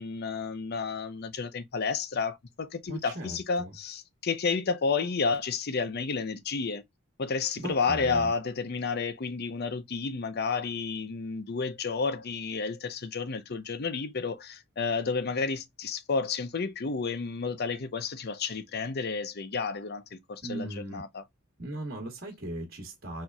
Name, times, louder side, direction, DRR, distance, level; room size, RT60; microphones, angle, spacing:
voice 1, 0.0-6.8 7.2-21.2, left 4 dB, 50° left, 0.6 m, -31 dB
voice 2, 2.9-3.7 7.5-8.3 20.4-21.0 21.6-23.2, right 1 dB, 45° right, 1.4 m, -38 dB
4.4 x 3.9 x 2.2 m
head